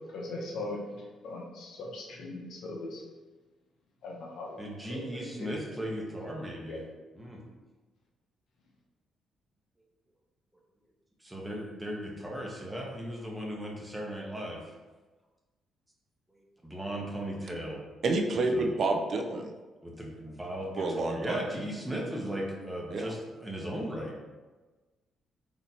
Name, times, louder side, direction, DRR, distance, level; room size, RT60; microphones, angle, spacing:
voice 1, 0.1-0.8 1.2-3.0 4.0-4.6 4.9-5.0 5.3-5.6 6.7-6.8, left 2 dB, 75° left, -1 dB, 1.0 m, -39 dB
voice 2, 4.6-6.8 7.1-7.4 11.2-14.7 16.3-17.8 18.5-18.7 19.8-24.1, equal, 10° right, -2 dB, 1.0 m, -37 dB
voice 3, 18.0-19.5 20.7-21.4 22.9-23.1, right 2 dB, 55° right, 3 dB, 0.5 m, -29 dB
4.1 x 3.0 x 4.2 m, 1.2 s
cardioid pair, 90°, 0 cm